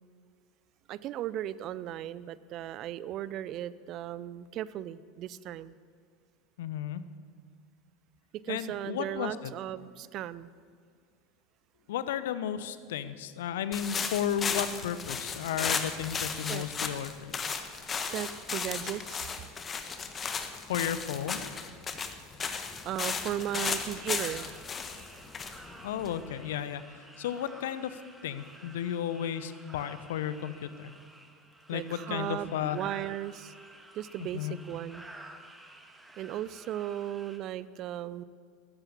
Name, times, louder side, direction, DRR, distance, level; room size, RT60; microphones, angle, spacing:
voice 1, 0.9-5.8 8.3-10.5 16.5-16.7 18.1-19.3 22.5-25.8 31.7-33.5 33.9-35.0 36.2-38.2, right 12 dB, 45° right, 18 dB, 0.6 m, -37 dB
voice 2, 6.6-7.0 8.5-9.5 11.9-17.3 20.7-21.5 25.8-26.8 27.2-27.9 28.2-30.9 31.7-32.8 34.3-34.6, left 9 dB, 65° left, 13 dB, 0.9 m, -33 dB
sound 1, 13.7-26.5, left 5 dB, 25° left, 1.4 m, -35 dB
sound 2, 23.0-37.4, right 1 dB, 10° right, 2.0 m, -52 dB
14.0 x 13.5 x 7.1 m, 2.2 s
figure-of-eight pair, 80°, 0 cm